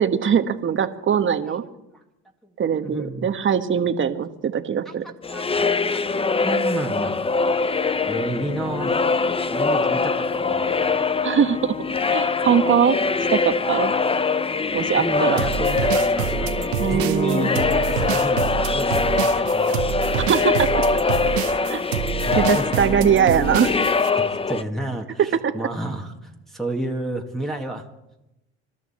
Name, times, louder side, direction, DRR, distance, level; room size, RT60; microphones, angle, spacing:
voice 1, 0.0-1.6 2.6-5.0 11.2-11.7 12.1-13.0 13.3-13.9 14.7-15.4 16.8-17.5 20.1-20.8 21.7-21.8 22.3-23.7 25.2-25.7, right 8 dB, 40° right, 10 dB, 1.4 m, -21 dB
voice 2, 2.8-3.3 4.9-6.0 6.4-7.3 8.1-9.0 9.5-10.8 15.0-19.7 22.3-22.6 24.5-27.9, right 1 dB, ahead, -1 dB, 2.0 m, -31 dB
sound 1, 5.2-24.6, left 4 dB, 20° left, 0.7 m, -23 dB
sound 2, 15.4-24.1, right 12 dB, 80° right, 1.2 m, -27 dB
25.5 x 12.5 x 4.4 m, 0.90 s
supercardioid pair, 75°, 32 cm